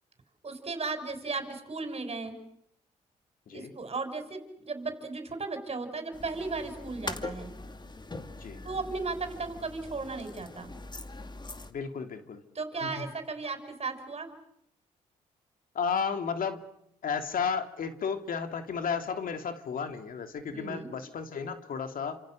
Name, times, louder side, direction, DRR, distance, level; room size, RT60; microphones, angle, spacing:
voice 1, 0.4-2.4 3.5-7.5 8.6-10.7 12.5-14.3 20.5-20.9, right 3 dB, 40° right, 7 dB, 6.4 m, -35 dB
sound 1, 6.1-11.7, left 2 dB, 30° left, 2.4 m, -42 dB
voice 2, 11.7-12.4 12.8-13.1 15.7-16.6 17.0-22.2, left 6 dB, 60° left, 7 dB, 2.8 m, -33 dB
30.0 x 27.0 x 6.5 m, 0.73 s
supercardioid pair, 55°, 16 cm